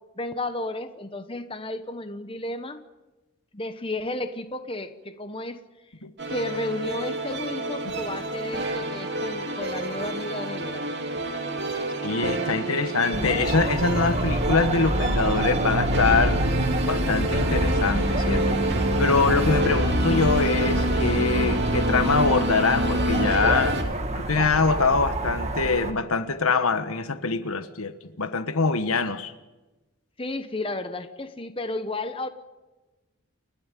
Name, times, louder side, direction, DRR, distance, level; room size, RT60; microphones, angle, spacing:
voice 1, 0.2-2.8 3.5-5.6 6.3-10.9 30.2-32.3, left 2 dB, 25° left, 1.0 m, -33 dB
sound 1, 6.2-23.8, right 1 dB, 50° right, 2.9 m, -28 dB
voice 2, 12.0-16.4 16.8-18.6 19.0-23.7 24.1-29.3, left 4 dB, 80° left, 1.3 m, -24 dB
sound 2, 13.1-25.9, right 1 dB, 30° right, 1.9 m, -27 dB
29.0 x 12.0 x 9.1 m
head